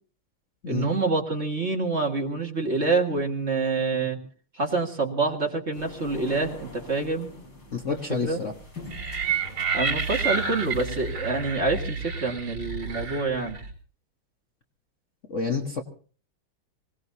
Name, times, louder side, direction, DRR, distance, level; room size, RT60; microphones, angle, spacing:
voice 1, 0.7-4.2 4.5-7.3 8.1-8.4 9.7-13.6, right 3 dB, 30° right, 2 dB, 2.1 m, -27 dB
sound 1, 5.7-11.6, left 2 dB, 60° left, 6.1 m, -45 dB
voice 2, 7.7-8.5 15.3-15.8, left 5 dB, 40° left, 3 dB, 1.5 m, -28 dB
sound 2, 8.9-13.7, right 5 dB, 70° right, 4.7 m, -30 dB
25.5 x 18.0 x 2.8 m, 0.42 s
omnidirectional pair, 2.3 m